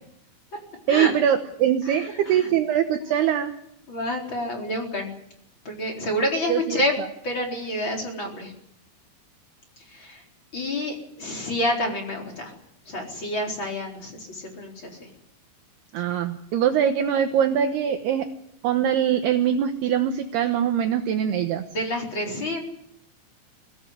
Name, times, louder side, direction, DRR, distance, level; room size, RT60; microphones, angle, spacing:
voice 1, 0.9-3.5 6.5-6.8 15.9-18.3 18.6-21.6, right 9 dB, 70° right, 6 dB, 2.8 m, -22 dB
voice 2, 1.8-2.5 3.0-3.1 3.9-5.1 5.6-6.9 7.2-8.5 9.8-10.2 10.5-12.6 12.9-15.1 21.7-22.6, left 1 dB, 25° left, 1 dB, 4.5 m, -28 dB
24.0 x 16.0 x 9.7 m, 0.76 s
omnidirectional pair, 5.3 m